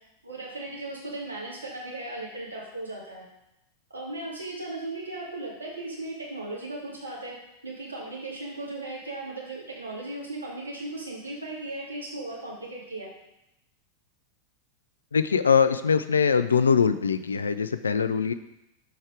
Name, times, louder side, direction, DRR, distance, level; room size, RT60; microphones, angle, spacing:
voice 1, 0.2-3.3 3.9-7.4 7.6-13.1, right 2 dB, 75° right, -4 dB, 2.1 m, -37 dB
voice 2, 15.1-18.3, left 6 dB, 70° left, 12 dB, 0.4 m, -22 dB
6.3 x 4.6 x 5.0 m, 0.87 s
figure-of-eight pair, 90°, 0 cm